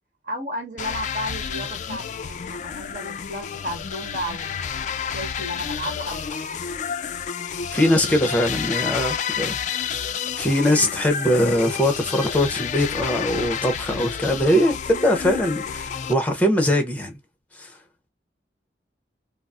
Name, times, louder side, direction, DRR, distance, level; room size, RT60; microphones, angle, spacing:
voice 1, 0.2-4.9 5.1-6.6, equal, 45° right, 1.4 m, -33 dB
sound 1, 0.8-16.1, left 7 dB, 45° left, 0.3 m, -30 dB
voice 2, 7.7-10.0 10.4-17.1 17.6-17.7, left 1 dB, 10° left, 0.7 m, -21 dB
3.9 x 2.0 x 2.4 m
head